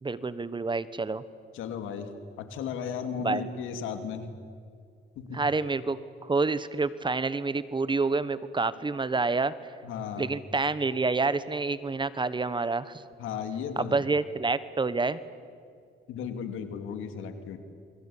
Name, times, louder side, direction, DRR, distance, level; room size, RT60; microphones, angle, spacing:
voice 1, 0.0-1.2 3.2-3.4 5.3-9.5 10.2-13.0 13.8-15.2, right 3 dB, 25° right, 15 dB, 1.3 m, -28 dB
voice 2, 1.5-4.3 5.2-5.4 9.8-10.4 13.2-14.0 16.1-17.6, left 7 dB, 90° left, 8 dB, 2.7 m, -35 dB
28.5 x 22.0 x 8.7 m, 2.2 s
cardioid pair, 90°, 20 cm